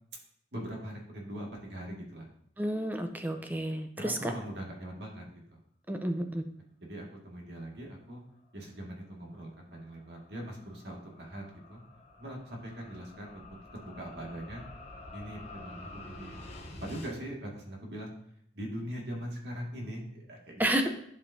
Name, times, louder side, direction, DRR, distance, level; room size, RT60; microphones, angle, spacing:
voice 1, 0.5-2.3 4.0-5.2 5.5-5.6 6.8-8.2 8.5-11.8 12.2-14.6 15.1-16.4 16.7-18.1 18.5-20.9, equal, 70° right, -1 dB, 2.0 m, -41 dB
voice 2, 2.6-4.3 5.9-6.4 20.6-20.9, right 1 dB, 10° right, 6 dB, 0.6 m, -31 dB
sound 1, 9.3-17.1, left 2 dB, 35° left, 1.2 m, -49 dB
11.5 x 5.3 x 2.7 m, 0.69 s
head